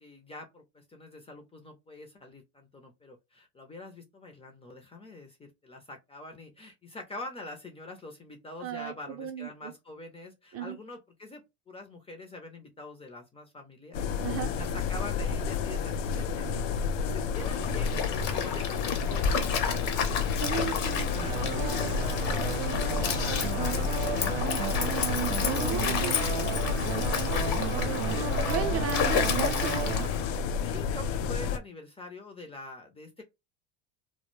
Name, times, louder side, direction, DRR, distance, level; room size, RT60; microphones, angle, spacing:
voice 1, 0.0-11.4 11.7-14.0 14.5-26.0 27.4-28.3 28.8-29.5 30.6-33.2, left 2 dB, 15° left, 0.5 m, -45 dB
voice 2, 8.6-9.7 10.5-10.8 14.2-14.5 20.4-21.1 25.4-26.5 28.5-29.8, right 7 dB, 40° right, 0.6 m, -35 dB
sound 1, 13.9-31.6, left 6 dB, 85° left, 0.5 m, -31 dB
Stream, 17.3-30.4, left 6 dB, 50° left, 0.7 m, -32 dB
sound 2, 21.1-30.1, right 11 dB, 85° right, 0.5 m, -34 dB
2.1 x 2.1 x 3.0 m
supercardioid pair, 95°, 37 cm